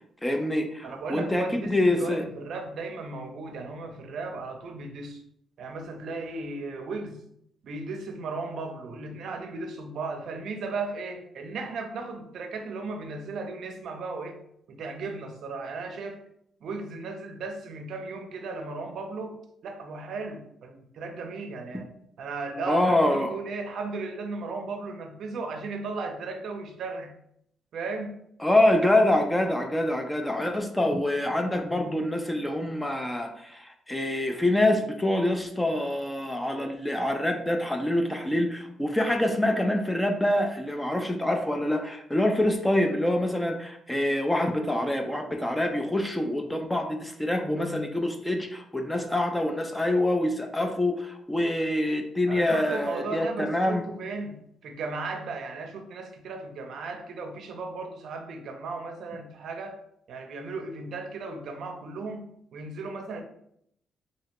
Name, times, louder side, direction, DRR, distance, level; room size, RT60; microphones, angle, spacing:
voice 1, 0.2-2.3 22.7-23.4 28.4-53.8, left 1 dB, 10° left, 5 dB, 0.3 m, -26 dB
voice 2, 0.8-5.2 5.6-7.2 7.6-14.4 14.7-16.2 16.6-21.9 22.2-27.1 27.7-28.2 52.3-59.8 60.1-63.2, right 3 dB, 60° right, 4 dB, 0.5 m, -36 dB
3.2 x 2.8 x 2.9 m, 0.72 s
cardioid pair, 130°, 0 cm